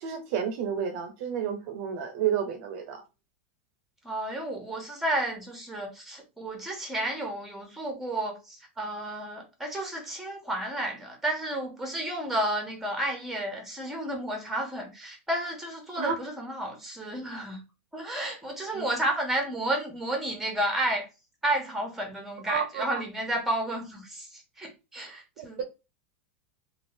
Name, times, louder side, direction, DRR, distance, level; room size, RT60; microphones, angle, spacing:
voice 1, 0.0-3.0 16.0-16.1 18.7-18.8 22.5-23.0 25.4-25.6, right 8 dB, 60° right, 0.6 m, -31 dB
voice 2, 4.0-17.6 17.9-21.1 21.4-25.6, right 1 dB, 5° right, 1.3 m, -32 dB
2.6 x 2.4 x 3.3 m
hypercardioid pair, 115°, 7 cm